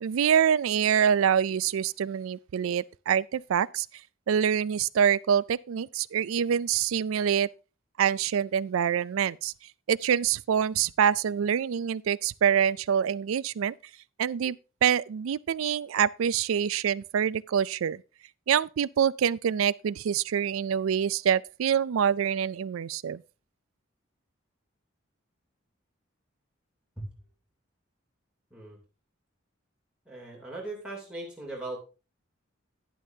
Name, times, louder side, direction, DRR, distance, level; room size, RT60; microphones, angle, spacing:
voice 1, 0.0-3.9 4.3-7.5 8.0-9.5 9.9-13.7 14.2-14.6 14.8-18.0 18.5-23.2, right 8 dB, 90° right, 0.4 m, -25 dB
voice 2, 30.0-31.8, right 2 dB, 5° right, 3.1 m, -38 dB
11.0 x 11.0 x 2.7 m
head